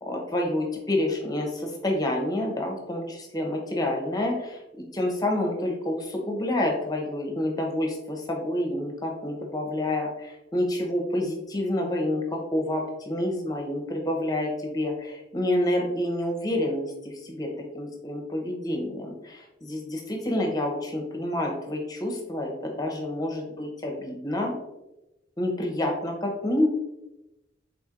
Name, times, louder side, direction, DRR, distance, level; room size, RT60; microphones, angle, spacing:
voice 1, 0.0-4.6 4.9-17.5 17.7-22.5 22.8-24.5 25.4-26.7, left 1 dB, 20° left, 1 dB, 0.7 m, -28 dB
4.3 x 4.0 x 2.4 m, 0.94 s
head